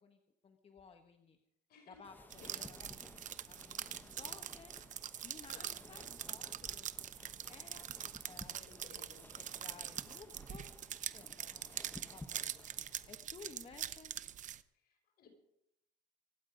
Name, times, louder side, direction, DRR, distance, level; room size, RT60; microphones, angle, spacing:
voice 1, 0.0-1.4 1.9-3.1 3.5-4.7 5.2-7.9 8.2-9.1 9.4-10.7 11.1-14.1, left 5 dB, 35° left, 5 dB, 1.3 m, -57 dB
voice 2, 1.7-2.7 5.5-6.1 8.7-9.3 14.7-15.3, left 4 dB, 65° left, 3 dB, 6.0 m, -59 dB
sound 1, 2.0-13.2, left 2 dB, 10° left, 0.9 m, -56 dB
sound 2, 2.3-14.6, right 10 dB, 50° right, 0.7 m, -44 dB
24.5 x 9.2 x 5.2 m, 0.79 s
cardioid pair, 110°, 17 cm